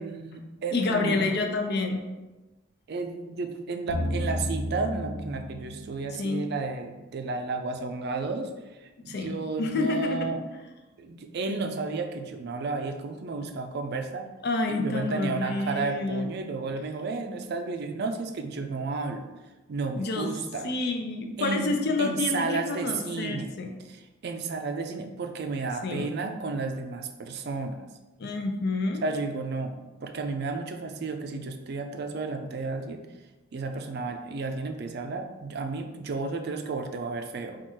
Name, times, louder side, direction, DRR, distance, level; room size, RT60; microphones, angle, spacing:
voice 1, 0.0-1.3 2.9-8.5 8.8-10.4 11.0-14.3 14.7-19.3 19.7-20.7 21.4-23.5 23.9-27.9 29.0-33.1 33.5-37.6, right 3 dB, 55° right, 6 dB, 0.4 m, -32 dB
voice 2, 0.7-2.0 6.2-6.5 9.0-10.3 14.4-16.3 19.9-20.3 20.6-23.8 25.8-26.1 28.2-29.0, left 3 dB, 55° left, 4 dB, 0.5 m, -28 dB
sound 1, 3.9-6.3, equal, 80° left, 0.8 m, -32 dB
4.4 x 2.4 x 4.4 m, 1.1 s
head